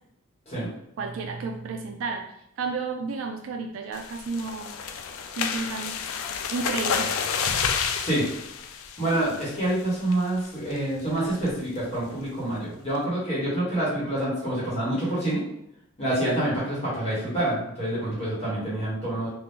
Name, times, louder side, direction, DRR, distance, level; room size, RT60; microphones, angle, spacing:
voice 1, 1.0-2.3 2.6-4.7 5.4-6.0 6.5-7.2, right 4 dB, 65° right, 4 dB, 0.3 m, -31 dB
sound 1, 3.9-9.7 10.1-10.4 10.7-10.8 11.2-11.5, left 6 dB, 70° left, 0.3 m, -30 dB
voice 2, 9.0-15.4 16.0-19.3, right 1 dB, 30° left, -8 dB, 1.3 m, -27 dB
2.7 x 2.4 x 3.5 m, 0.80 s
head